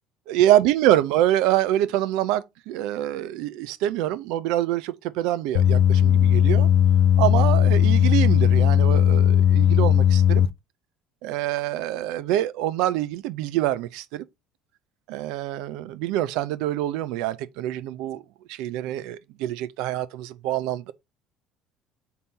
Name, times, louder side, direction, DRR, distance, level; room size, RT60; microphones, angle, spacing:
voice 1, 0.3-6.7 7.2-10.4 11.2-14.2 15.1-18.2 18.5-20.9, right 13 dB, 75° right, 0.4 m, -25 dB
sound 1, 5.5-10.5, left 9 dB, 80° left, 0.4 m, -17 dB
4.0 x 2.8 x 3.6 m
supercardioid pair, 85°, 0 cm